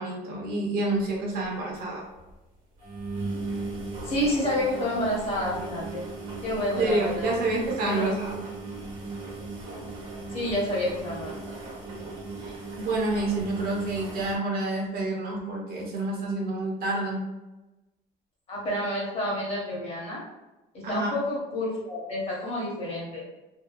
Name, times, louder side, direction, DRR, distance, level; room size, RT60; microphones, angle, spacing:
voice 1, 0.0-2.1 6.8-8.4 12.4-17.2 20.8-21.1, right 2 dB, 50° right, -2 dB, 0.7 m, -28 dB
sound 1, 1.0-1.1 1.4-1.5 1.7-1.8 2.2-2.3 2.8-14.4, right 3 dB, 70° right, 1.0 m, -37 dB
voice 2, 4.0-6.0 6.4-7.4 7.9-8.1 10.3-11.6 18.5-20.2 20.7-23.2, left 1 dB, 30° left, -5 dB, 1.0 m, -29 dB
2.7 x 2.2 x 2.4 m, 1.0 s
cardioid pair, 150°, 19 cm